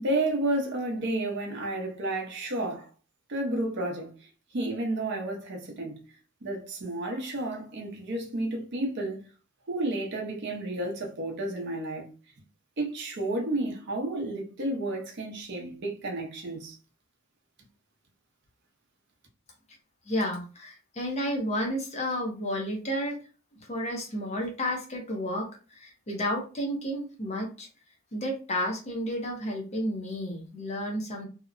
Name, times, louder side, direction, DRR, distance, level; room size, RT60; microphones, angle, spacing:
voice 1, 0.0-2.9 3.3-6.1 6.4-9.2 9.7-12.1 12.8-16.7, right 1 dB, 55° right, 0.6 m, -31 dB
voice 2, 20.1-23.2 23.6-27.7 28.1-31.3, equal, 30° left, 0.6 m, -31 dB
2.8 x 2.0 x 2.4 m
head